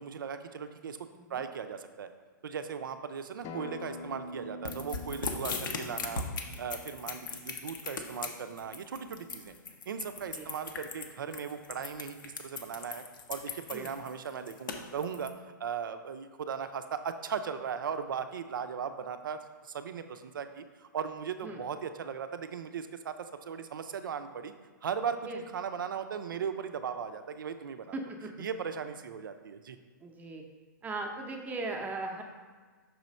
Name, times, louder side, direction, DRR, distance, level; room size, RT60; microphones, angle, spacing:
voice 1, 0.0-1.0 1.3-2.1 2.4-6.2 6.6-9.5 9.9-13.0 13.3-15.3 15.6-24.5 24.8-28.0 28.4-29.8, right 7 dB, 75° right, 9 dB, 0.5 m, -38 dB
Acoustic guitar, 3.4-8.6, left 2 dB, 25° left, 0.5 m, -46 dB
sound 1, 4.7-15.3, left 5 dB, 70° left, 0.8 m, -38 dB
voice 2, 27.9-28.3 30.0-30.4 30.8-32.2, right 2 dB, 15° right, 2 dB, 0.7 m, -38 dB
6.2 x 3.1 x 5.2 m, 1.5 s
hypercardioid pair, 125°, 11 cm